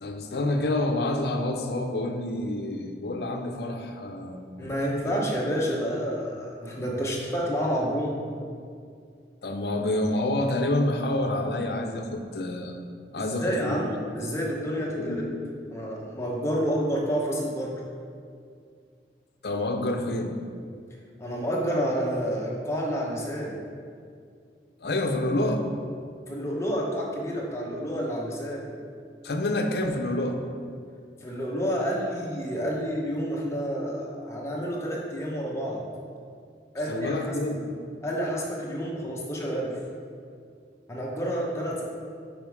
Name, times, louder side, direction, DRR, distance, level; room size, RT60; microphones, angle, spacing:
voice 1, 0.0-4.7 5.0-5.2 9.4-12.8 13.1-13.8 15.0-15.3 19.4-20.3 24.8-25.7 29.2-30.4 36.9-37.7, left 1 dB, 65° left, 5 dB, 0.6 m, -28 dB
voice 2, 4.6-8.1 13.2-15.2 15.7-17.7 21.2-23.6 26.3-28.7 31.2-35.8 36.7-37.2 38.0-39.8 40.9-41.8, equal, 15° left, -3 dB, 0.9 m, -29 dB
5.4 x 5.1 x 4.7 m, 2.3 s
head